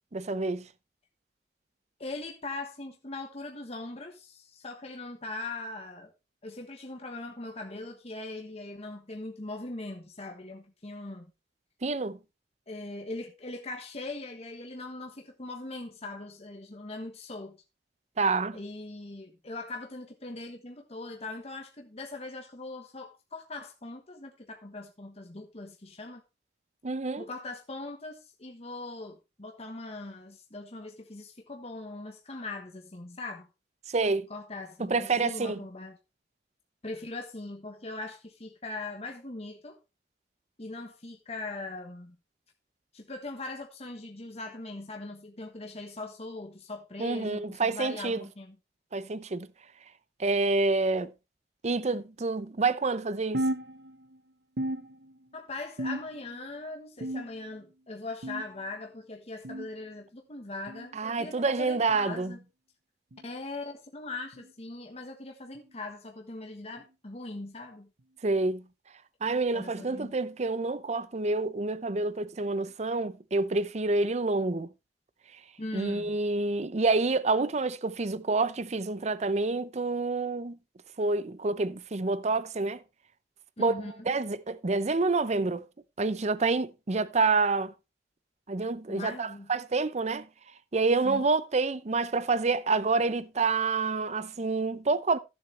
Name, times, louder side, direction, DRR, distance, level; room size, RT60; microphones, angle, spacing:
voice 1, 0.1-0.6 11.8-12.2 18.2-18.6 26.8-27.2 33.9-34.3 34.8-35.6 47.0-48.2 48.9-49.5 50.2-51.1 51.6-53.4 61.0-62.3 68.2-68.6 69.2-74.7 75.7-80.6 81.0-82.8 83.6-83.7 84.1-85.6 86.0-87.7 88.5-90.3 90.7-95.2, right 3 dB, 40° right, 0.6 m, -28 dB
voice 2, 2.0-6.1 6.4-11.3 12.7-17.6 18.5-26.2 27.2-33.5 34.3-36.0 36.8-39.8 40.6-42.2 42.9-48.6 55.3-62.4 63.2-67.9 69.5-70.2 75.6-76.1 83.6-84.1 88.9-89.5 91.0-91.3, left 2 dB, 35° left, 1.3 m, -40 dB
sound 1, 53.3-54.2 54.6-55.4 55.8-56.4 57.0-57.6 58.2-58.6 59.4-59.7 60.7-60.9 61.9-62.1 63.1-63.3 64.3-64.5 65.5-65.7 66.8-66.9 68.0-68.1, right 1 dB, 70° right, 1.0 m, -35 dB
15.0 x 7.2 x 3.3 m
head